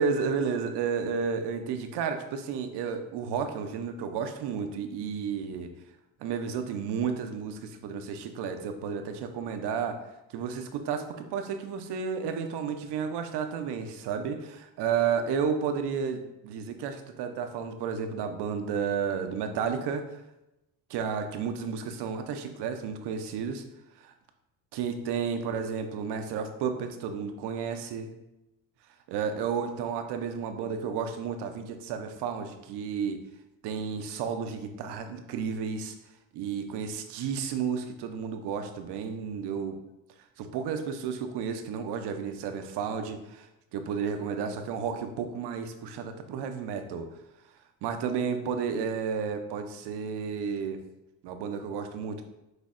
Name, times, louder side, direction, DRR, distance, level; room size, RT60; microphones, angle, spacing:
voice 1, 0.0-5.7 6.2-10.0 10.3-20.2 20.9-23.6 24.0-24.1 24.7-28.1 29.1-33.2 33.6-36.0 36.3-39.8 40.4-47.1 47.8-50.8 51.2-52.2, right 6 dB, 60° right, 7 dB, 0.6 m, -32 dB
6.2 x 2.6 x 2.5 m, 0.93 s
supercardioid pair, 75°, 46 cm